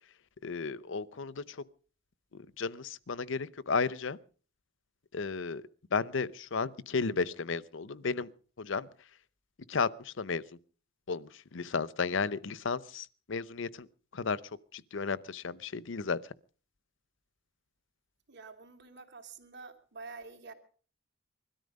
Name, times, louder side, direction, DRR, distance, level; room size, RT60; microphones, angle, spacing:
voice 1, 0.4-1.6 2.3-4.2 5.1-5.6 5.9-8.3 8.6-8.9 9.7-10.4 11.1-13.9 14.1-14.4 14.7-16.2, left 4 dB, 65° left, 0.7 m, -33 dB
voice 2, 18.3-20.5, right 4 dB, 60° right, 2.9 m, -48 dB
21.0 x 13.0 x 5.3 m
head